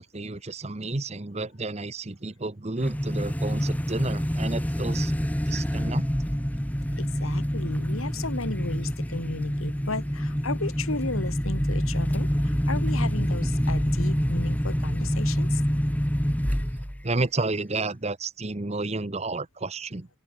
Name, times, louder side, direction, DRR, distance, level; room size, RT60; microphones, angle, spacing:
voice 1, 0.0-5.1 5.5-6.0 17.0-20.1, right 2 dB, 30° right, 0.9 m, -31 dB
sound 1, 2.8-17.0, equal, 5° left, 2.1 m, -26 dB
voice 2, 7.0-15.6, left 3 dB, 85° left, 2.2 m, -34 dB
open air
head